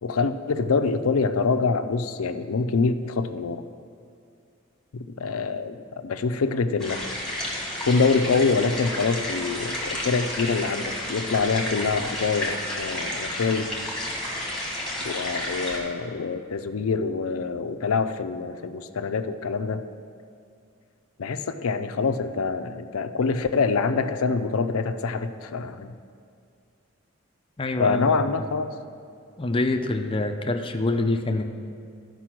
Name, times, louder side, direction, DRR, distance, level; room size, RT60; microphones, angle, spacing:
voice 1, 0.0-3.6 4.9-7.0 7.9-13.7 15.0-19.8 21.2-25.9 27.7-28.7, left 4 dB, 90° left, 10 dB, 0.5 m, -25 dB
sound 1, 6.8-15.8, left 1 dB, 5° left, 1.7 m, -31 dB
voice 2, 27.6-28.5 29.4-31.6, left 2 dB, 25° left, 6 dB, 0.5 m, -26 dB
13.0 x 5.3 x 5.9 m, 2.3 s
head